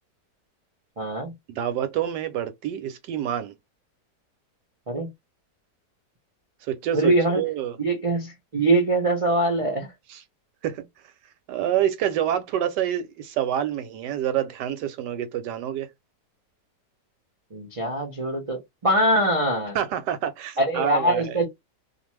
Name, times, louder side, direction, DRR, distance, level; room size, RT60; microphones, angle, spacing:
voice 1, 1.0-1.3 4.9-5.1 6.9-7.4 7.8-9.9 17.5-19.8 20.6-21.5, right 1 dB, 45° right, 0.4 m, -23 dB
voice 2, 1.5-3.5 6.7-7.8 10.1-10.2 10.6-10.8 11.5-15.9 19.7-21.3, right 10 dB, 85° right, 1.2 m, -27 dB
2.6 x 2.5 x 3.0 m
omnidirectional pair, 1.8 m